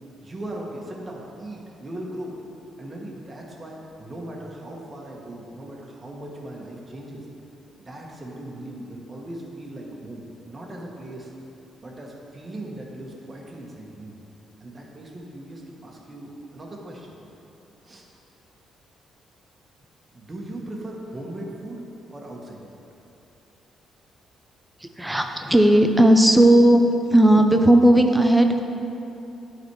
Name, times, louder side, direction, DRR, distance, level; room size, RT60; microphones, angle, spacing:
voice 1, 0.2-2.4 2.8-7.3 7.8-11.3 11.8-14.1 14.6-17.2 17.8-18.1 20.1-21.9 22.1-22.8, right 1 dB, 25° right, -2 dB, 1.4 m, -38 dB
voice 2, 24.8-28.6, right 1 dB, 10° right, 5 dB, 0.6 m, -16 dB
11.5 x 4.1 x 4.7 m, 2.8 s
cardioid pair, 90°, 0 cm